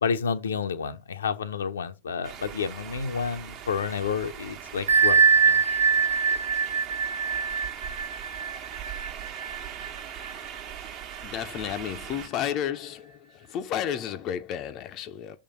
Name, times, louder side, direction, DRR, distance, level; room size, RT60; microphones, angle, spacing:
voice 1, 0.0-5.2 5.5-5.6, left 6 dB, 70° left, 0.8 m, -30 dB
sound 1, 2.2-12.3, right 9 dB, 40° right, 1.2 m, -40 dB
Bell, 4.9-10.3, right 5 dB, 70° right, 1.1 m, -23 dB
voice 2, 11.2-15.4, left 10 dB, 35° left, 0.7 m, -32 dB
6.7 x 3.7 x 6.0 m
figure-of-eight pair, 90°, 0 cm